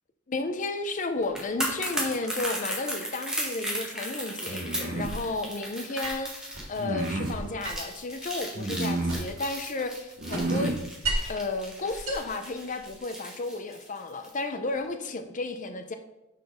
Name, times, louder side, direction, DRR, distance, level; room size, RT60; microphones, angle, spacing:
voice 1, 0.3-10.7 11.3-15.9, left 3 dB, 40° left, 8 dB, 0.6 m, -33 dB
sound 1, 1.2-14.4 14.7-14.8, right 1 dB, 5° right, 1.5 m, -36 dB
sound 2, 4.5-5.2 6.8-7.4 8.5-9.3 10.2-10.8, right 2 dB, 45° right, 1.1 m, -30 dB
sound 3, 6.0-6.7 7.6-9.5 9.8-11.4 11.9-13.0, right 2 dB, 70° right, 2.4 m, -35 dB
6.4 x 6.0 x 5.2 m, 0.94 s
head